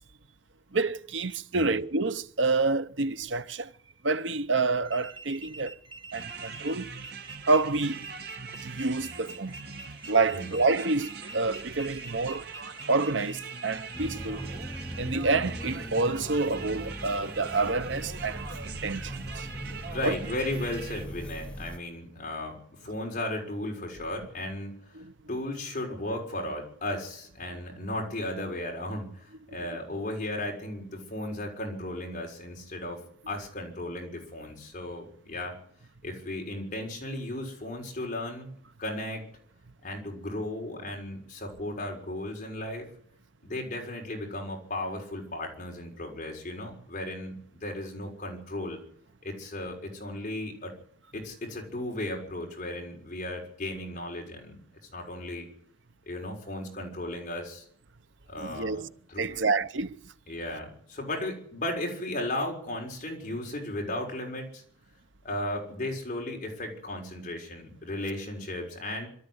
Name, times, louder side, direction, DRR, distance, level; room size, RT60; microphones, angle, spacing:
voice 1, 0.7-3.7 4.0-5.8 6.1-6.9 7.4-8.1 8.4-9.6 10.1-12.5 12.9-14.5 15.0-19.5 20.0-20.2 24.9-25.1 58.4-58.9 59.2-60.0, right 3 dB, 75° right, 1.0 m, -28 dB
sound 1, 4.8-13.4, right 3 dB, 25° right, 2.0 m, -46 dB
sound 2, 6.1-21.1, right 4 dB, 55° right, 2.4 m, -42 dB
sound 3, 13.9-21.8, equal, 5° left, 1.2 m, -40 dB
voice 2, 19.6-35.6 36.0-38.5 38.8-39.3 39.8-42.9 43.4-48.8 49.2-50.7 51.1-54.6 54.9-55.5 56.1-57.7 58.3-58.8 59.1-59.4 60.3-64.6 65.2-69.1, left 1 dB, 40° left, 6.2 m, -35 dB
23.5 x 13.5 x 9.8 m
head